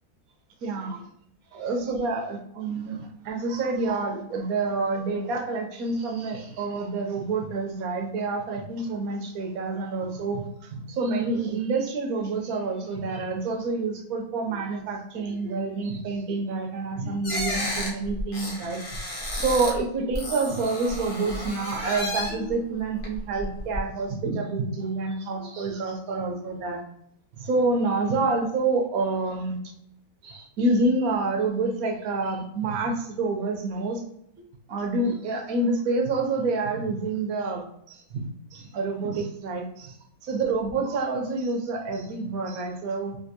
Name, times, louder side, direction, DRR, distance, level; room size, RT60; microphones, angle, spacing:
voice 1, 0.6-1.0 1.5-18.8 19.3-26.8 27.4-29.6 30.2-34.0 34.7-39.9 40.2-43.2, right 3 dB, 80° right, 3 dB, 1.1 m, -28 dB
sound 1, 17.2-19.8 20.1-22.5 23.0-23.8, left 1 dB, 45° left, 0.9 m, -32 dB
3.4 x 2.5 x 2.7 m, 0.73 s
omnidirectional pair, 1.5 m